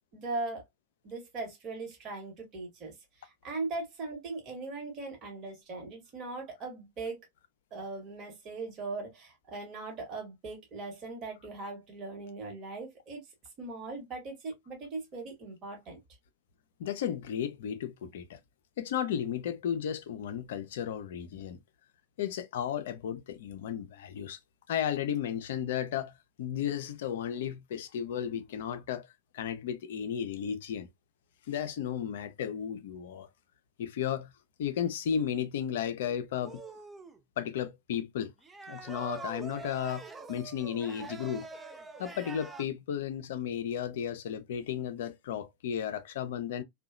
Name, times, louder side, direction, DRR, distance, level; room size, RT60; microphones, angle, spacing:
voice 1, 0.1-0.6 1.0-7.3 7.7-13.2 13.6-16.0, right 3 dB, 35° right, 1.1 m, -39 dB
voice 2, 16.8-18.4 18.8-21.6 22.2-24.4 24.7-29.1 29.3-30.9 31.5-33.3 33.8-34.3 34.6-36.6 37.4-38.3 38.7-41.5 42.0-46.6, left 9 dB, 55° left, 0.4 m, -34 dB
sound 1, 36.4-37.2 38.4-42.6, right 4 dB, 10° right, 0.4 m, -44 dB
2.7 x 2.1 x 2.3 m
figure-of-eight pair, 90°, 0 cm